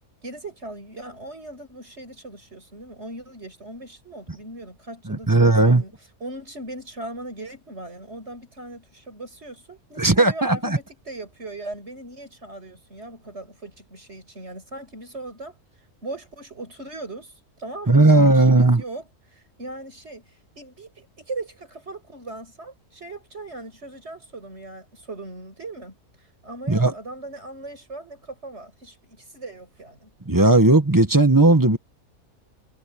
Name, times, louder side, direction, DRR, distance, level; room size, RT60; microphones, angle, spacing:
voice 1, 0.2-5.9 6.2-15.6 16.0-20.2 20.6-30.1, right 2 dB, 45° right, 7.1 m, -39 dB
voice 2, 5.1-5.8 10.0-10.8 17.9-18.8 26.7-26.9 30.3-31.8, right 2 dB, 15° right, 1.3 m, -16 dB
omnidirectional pair, 1.5 m